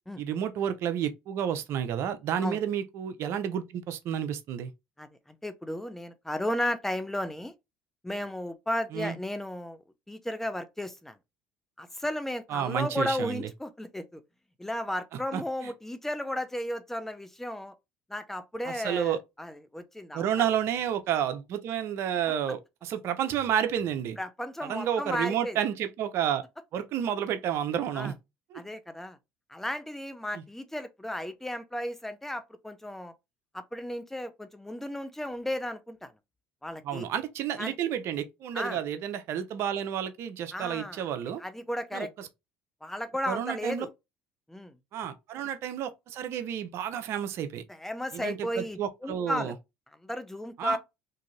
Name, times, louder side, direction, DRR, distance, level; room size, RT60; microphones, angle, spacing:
voice 1, 0.2-4.7 8.9-9.1 12.5-13.5 15.3-15.4 18.7-19.2 20.1-24.2 24.6-26.4 26.7-28.1 28.5-28.6 30.3-30.4 36.8-41.4 41.9-42.3 43.3-43.9 44.9-47.6 48.1-49.5 50.6-50.8, right 9 dB, 60° right, 0.6 m, -30 dB
voice 2, 5.0-7.5 8.0-11.2 11.8-14.2 14.6-17.7 18.1-20.5 22.3-22.4 24.2-25.6 27.9-28.1 28.5-29.2 29.5-33.1 33.5-36.1 36.6-37.1 37.6-37.7 38.5-38.8 40.5-41.1 41.4-42.1 42.8-43.9 44.5-44.8 47.7-49.5 50.0-50.8, left 1 dB, 5° left, 0.6 m, -34 dB
2.6 x 2.4 x 3.1 m
hypercardioid pair, 75°, 5 cm